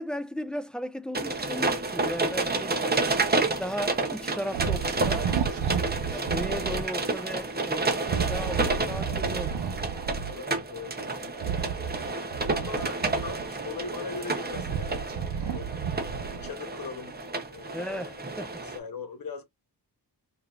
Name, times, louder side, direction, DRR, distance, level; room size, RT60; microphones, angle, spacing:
voice 1, 0.0-2.8 3.4-4.8 5.1-5.3 6.1-9.6 17.7-18.6, equal, ahead, 0.3 m, -36 dB
sound 1, 1.1-18.8, right 3 dB, 25° right, 0.7 m, -30 dB
voice 2, 4.4-4.9 10.3-11.3 12.5-15.0 15.3-15.7 16.3-17.2 17.5-18.2 18.6-19.4, left 5 dB, 60° left, 1.0 m, -40 dB
sound 2, 4.5-6.9 8.0-10.4 11.3-13.6 14.2-16.6, right 7 dB, 80° right, 0.7 m, -32 dB
4.9 x 2.6 x 2.4 m
wide cardioid pair, 150°, 40 cm